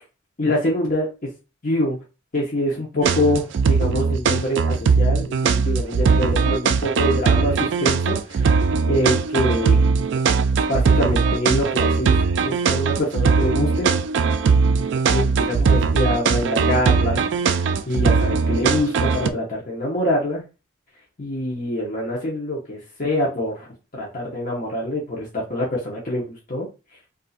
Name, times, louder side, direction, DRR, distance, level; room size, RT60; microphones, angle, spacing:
voice 1, 0.4-1.1 1.6-2.0 2.3-9.9 10.7-12.2 12.4-13.9 15.1-20.4 21.2-26.2 26.5-26.7, left 1 dB, 40° left, -4 dB, 0.9 m, -25 dB
sound 1, 3.0-19.3, right 5 dB, 55° right, 0.3 m, -19 dB
4.1 x 2.6 x 2.4 m, 0.29 s
head